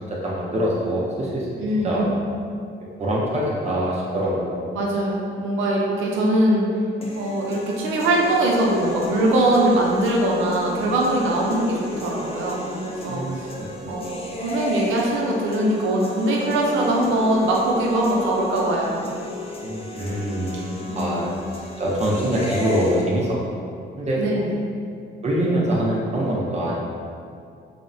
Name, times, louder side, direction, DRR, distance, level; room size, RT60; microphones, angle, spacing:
voice 1, 0.2-1.5 1.8-2.0 3.0-4.6 13.1-13.4 13.8-14.0 19.6-20.5 20.9-21.3 21.8-23.3 24.0-24.2 25.2-26.8, right 1 dB, 35° right, -5 dB, 0.5 m, -24 dB
voice 2, 1.6-2.2 4.7-6.6 7.1-13.5 13.9-19.0 20.9-21.3 24.2-24.7, right 1 dB, 80° right, -3 dB, 0.5 m, -22 dB
sound 1, 7.0-23.0, left 1 dB, 30° left, 0.4 m, -33 dB
2.8 x 2.0 x 2.6 m, 2.4 s
cardioid pair, 90°, 20 cm